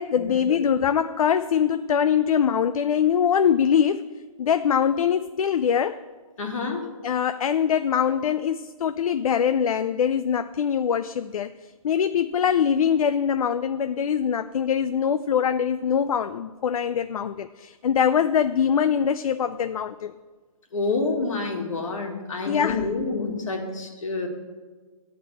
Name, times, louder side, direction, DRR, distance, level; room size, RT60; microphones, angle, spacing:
voice 1, 0.0-4.1 4.4-6.0 7.0-11.5 11.8-20.1 22.5-22.9, left 8 dB, 80° left, 10 dB, 0.4 m, -23 dB
voice 2, 6.4-6.9 20.7-24.3, left 3 dB, 65° left, 2 dB, 1.8 m, -28 dB
11.0 x 3.9 x 7.7 m, 1.4 s
hypercardioid pair, 165°, 18 cm